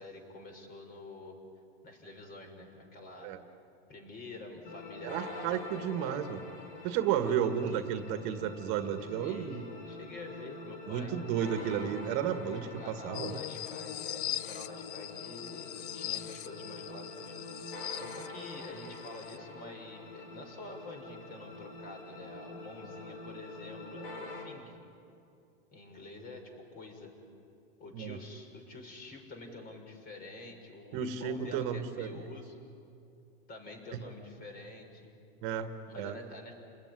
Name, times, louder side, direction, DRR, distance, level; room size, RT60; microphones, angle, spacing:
voice 1, 0.0-1.4 1.8-3.3 3.9-6.3 7.2-7.8 9.0-11.2 11.4-11.8 12.6-24.8 25.7-27.2 27.8-32.6 33.5-35.1 35.9-36.5, left 2 dB, 30° left, 4 dB, 6.0 m, -48 dB
sound 1, 4.6-24.4, left 2 dB, 85° left, 7.1 m, -46 dB
voice 2, 5.0-6.4 6.8-9.6 10.9-13.4 27.9-28.2 30.9-32.3 35.4-35.7 36.0-36.2, right 9 dB, 45° right, 7 dB, 1.9 m, -33 dB
sound 2, 13.1-19.4, left 13 dB, 65° left, 0.9 m, -41 dB
29.5 x 20.0 x 10.0 m, 2.5 s
supercardioid pair, 140°, 29 cm